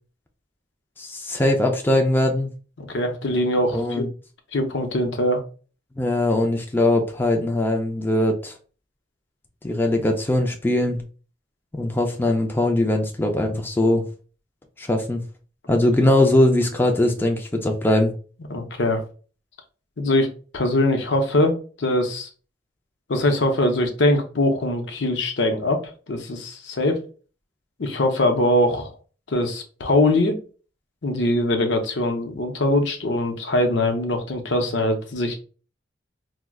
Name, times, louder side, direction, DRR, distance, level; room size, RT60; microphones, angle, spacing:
voice 1, 1.0-2.5 3.7-4.1 6.0-8.6 9.6-11.0 11.7-14.0 14.8-15.2 15.7-18.1, left 1 dB, 10° left, 3 dB, 0.4 m, -21 dB
voice 2, 2.8-4.1 4.5-5.4 18.5-19.0 20.0-22.3 23.1-25.8 26.1-27.0 27.8-28.9 29.3-30.4 31.0-35.3, left 1 dB, 70° left, 5 dB, 0.7 m, -22 dB
4.7 x 2.1 x 2.3 m, 0.38 s
head